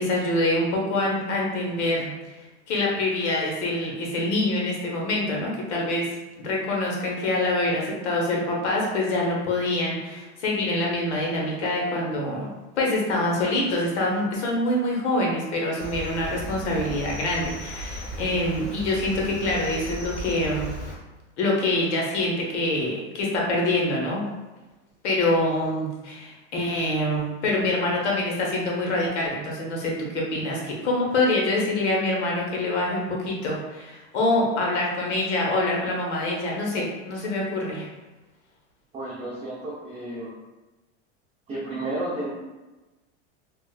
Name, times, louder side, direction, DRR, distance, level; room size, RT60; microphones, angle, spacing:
voice 1, 0.0-2.1 2.7-6.1 6.4-12.5 12.8-20.7 21.4-24.2 25.0-37.9, left 1 dB, 80° left, -2 dB, 1.1 m, -25 dB
Cricket, 15.8-21.0, right 1 dB, 55° left, 1.1 m, -36 dB
voice 2, 38.9-40.3 41.5-42.3, right 1 dB, 20° right, -8 dB, 0.7 m, -32 dB
3.7 x 2.4 x 2.3 m, 1.1 s
supercardioid pair, 120°, 34 cm